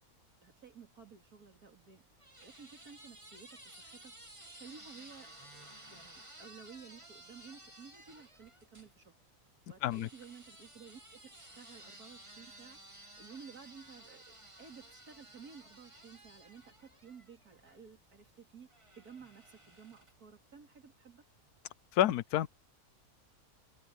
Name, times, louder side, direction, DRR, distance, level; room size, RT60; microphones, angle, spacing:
voice 1, 0.4-2.0 2.4-4.1 4.5-9.1 9.7-18.7 19.0-21.2, right 6 dB, 80° right, 3.4 m, -54 dB
sound 1, 1.5-8.9 9.9-17.8 18.7-20.3, right 1 dB, 20° right, 2.5 m, -55 dB
voice 2, 21.9-22.5, left 12 dB, 85° left, 1.2 m, -29 dB
omnidirectional pair, 1.6 m